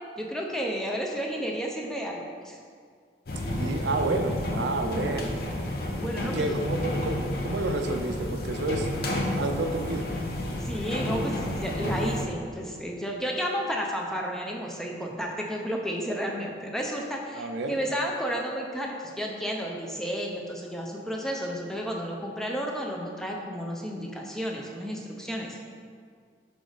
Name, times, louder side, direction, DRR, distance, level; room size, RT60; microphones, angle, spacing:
voice 1, 0.2-2.6 5.9-6.6 10.6-25.6, equal, 5° left, -1 dB, 0.5 m, -32 dB
sound 1, 3.3-12.2, left 1 dB, 55° left, 0.7 m, -31 dB
voice 2, 3.5-5.4 6.2-8.9 9.3-10.2 17.3-17.8, right 2 dB, 80° right, 5 dB, 0.5 m, -30 dB
4.9 x 4.8 x 3.9 m, 2.1 s
head